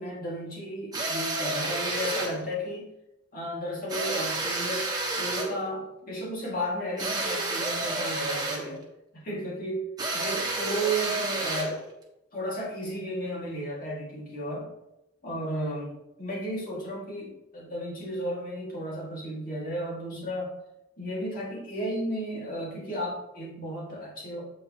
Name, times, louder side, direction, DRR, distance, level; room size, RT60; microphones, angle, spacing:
voice 1, 0.0-2.9 3.3-4.9 5.2-8.8 9.1-9.9 10.1-11.8 12.3-14.7 15.2-15.9 16.2-20.6 21.0-24.4, equal, 50° left, -4 dB, 2.2 m, -33 dB
sound 1, 0.9-2.4 3.9-5.6 7.0-8.7 10.0-11.8, right 2 dB, 20° right, 1.2 m, -30 dB
7.7 x 5.4 x 3.0 m, 0.91 s
head